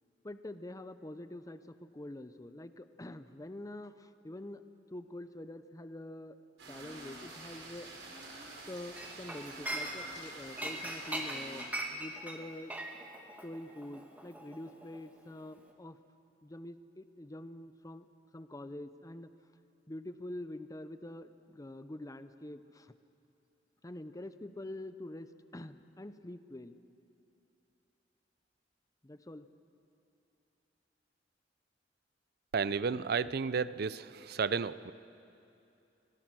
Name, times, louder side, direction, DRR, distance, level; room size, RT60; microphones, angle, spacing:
voice 1, 0.2-4.6 4.9-6.4 6.7-8.2 8.7-12.7 13.4-16.0 16.4-18.1 18.3-19.3 19.9-22.9 23.8-26.8 29.0-29.5, left 1 dB, 20° left, 11 dB, 0.7 m, -46 dB
sound 1, 6.6-11.6, right 2 dB, 85° right, 5.1 m, -48 dB
Chink clink, 9.0-10.2 10.6-15.2 15.5-15.7, right 1 dB, 10° right, 1.9 m, -40 dB
voice 2, 32.5-34.9, right 5 dB, 60° right, 17 dB, 0.5 m, -32 dB
26.0 x 18.5 x 6.2 m, 2.7 s
head